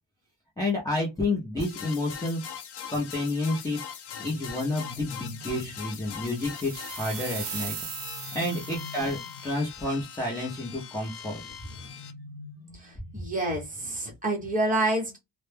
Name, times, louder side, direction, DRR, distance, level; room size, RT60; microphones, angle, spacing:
voice 1, 0.6-2.4 2.9-3.8 4.2-7.7 8.3-11.4, left 2 dB, 10° left, 0.5 m, -30 dB
sound 1, 1.6-12.1, left 8 dB, 60° left, 0.5 m, -41 dB
sound 2, 4.1-5.9 7.8-9.6 11.5-13.4, left 4 dB, 80° left, 0.9 m, -46 dB
sound 3, 6.3-9.3, right 9 dB, 60° right, 0.6 m, -39 dB
voice 2, 12.7-15.2, right 2 dB, 15° right, 0.8 m, -28 dB
2.1 x 2.0 x 3.1 m
wide cardioid pair, 165°, 46 cm